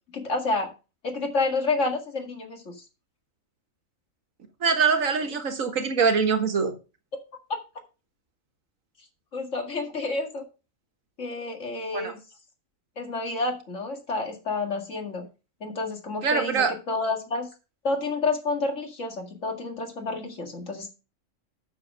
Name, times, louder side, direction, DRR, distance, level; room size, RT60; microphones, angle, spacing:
voice 1, 0.1-0.7 1.0-2.7 7.5-7.6 9.3-10.4 11.2-12.2 13.0-15.3 15.6-17.5 17.8-20.9, left 3 dB, 60° left, 2.4 m, -29 dB
voice 2, 4.6-6.7 11.9-12.1 16.2-16.7, right 5 dB, 75° right, 1.8 m, -23 dB
8.7 x 6.6 x 5.1 m
omnidirectional pair, 1.4 m